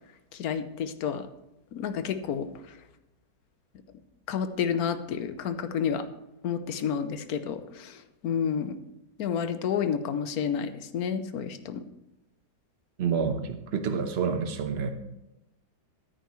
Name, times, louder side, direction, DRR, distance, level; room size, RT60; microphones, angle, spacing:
voice 1, 0.3-1.3 1.7-2.5 4.3-6.0 6.4-8.8 9.2-11.8, left 7 dB, 65° left, 10 dB, 1.2 m, -30 dB
voice 2, 13.0-14.9, right 6 dB, 45° right, 7 dB, 1.1 m, -28 dB
14.5 x 9.1 x 3.1 m, 0.94 s
omnidirectional pair, 1.8 m